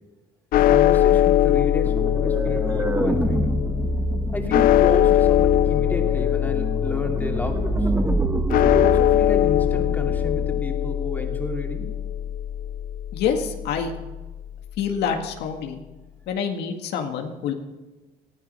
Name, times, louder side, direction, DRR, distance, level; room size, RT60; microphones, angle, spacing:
sound 1, 0.5-14.8, left 12 dB, 60° left, 0.4 m, -22 dB
voice 1, 0.5-3.5 4.3-7.9 8.6-12.0, left 1 dB, 10° left, 2 dB, 2.7 m, -31 dB
sound 2, 1.8-10.6, right 2 dB, 10° right, 1.3 m, -27 dB
voice 2, 13.1-13.9 14.8-15.8 16.3-17.5, left 7 dB, 80° left, 4 dB, 1.8 m, -26 dB
19.5 x 13.5 x 5.5 m, 1.2 s
cardioid pair, 110°, 17 cm